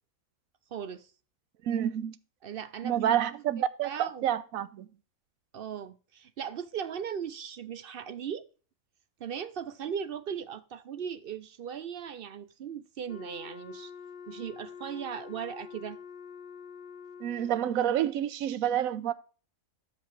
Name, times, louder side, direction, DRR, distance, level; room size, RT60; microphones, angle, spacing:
voice 1, 0.7-1.1 2.4-3.0 3.6-4.2 5.5-8.5 9.2-13.9 14.3-16.0, right 8 dB, 60° right, 0.6 m, -38 dB
voice 2, 1.6-2.2 2.8-4.9 17.2-19.1, right 10 dB, 80° right, 1.1 m, -28 dB
Wind instrument woodwind instrument, 13.1-17.7, left 6 dB, 55° left, 0.7 m, -46 dB
13.0 x 5.3 x 3.2 m
omnidirectional pair, 1.4 m